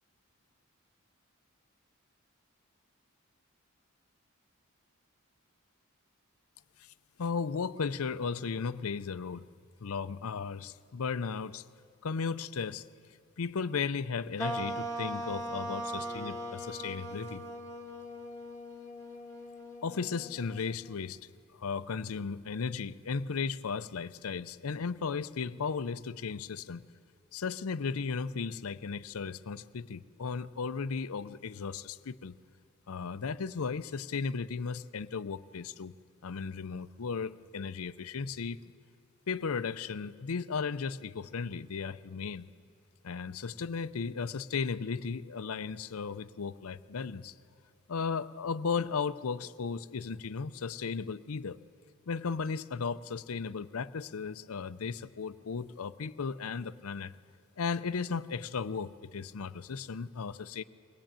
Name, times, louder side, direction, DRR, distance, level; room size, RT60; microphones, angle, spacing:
voice 1, 7.2-9.4 9.8-11.6 12.0-12.9 13.4-17.4 19.8-21.2 21.6-26.8 27.3-32.4 32.9-35.9 36.2-38.6 39.3-42.5 43.0-47.3 47.9-51.6 52.1-57.1 57.6-60.6, left 5 dB, 70° left, 15 dB, 0.6 m, -35 dB
sound 1, 14.4-21.1, right 1 dB, 15° left, 1.5 m, -40 dB
22.0 x 18.0 x 8.9 m, 2.4 s
head